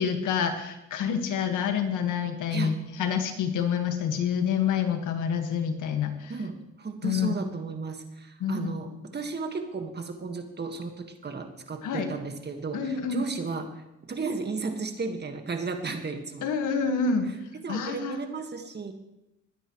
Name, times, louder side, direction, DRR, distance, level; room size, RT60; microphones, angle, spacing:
voice 1, 0.0-6.3 7.0-7.4 8.4-8.7 11.8-12.1 12.7-13.2 16.4-17.3 17.7-18.2, left 7 dB, 80° left, 6 dB, 1.7 m, -27 dB
voice 2, 6.3-16.5 17.6-18.9, right 4 dB, 35° right, 5 dB, 1.7 m, -34 dB
21.0 x 9.7 x 3.1 m, 0.90 s
cardioid pair, 90°, 30 cm